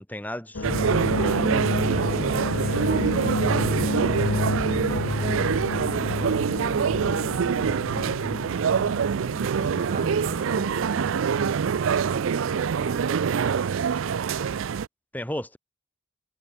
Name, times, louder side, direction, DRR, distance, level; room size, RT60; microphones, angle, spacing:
voice 1, 0.0-1.6 15.1-15.6, left 1 dB, 10° left, 4.3 m, -35 dB
sound 1, 0.5-12.7 12.9-13.4, left 2 dB, 80° left, 1.1 m, -30 dB
sound 2, 0.6-14.9, right 7 dB, 80° right, 0.4 m, -25 dB
voice 2, 1.7-4.5 4.9-6.7 7.9-8.4 9.4-11.6 12.0-14.5, right 1 dB, 40° right, 4.1 m, -40 dB
head